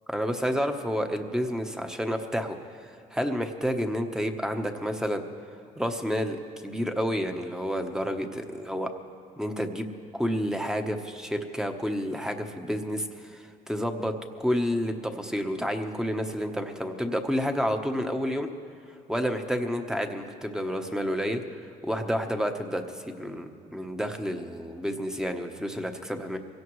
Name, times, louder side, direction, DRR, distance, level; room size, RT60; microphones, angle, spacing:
voice 1, 0.1-5.2 5.8-8.9 9.4-9.9 10.1-18.5 19.1-21.4 21.8-26.4, equal, 5° right, 5 dB, 1.0 m, -30 dB
24.0 x 17.0 x 3.2 m, 2.6 s
cardioid pair, 110°, 17 cm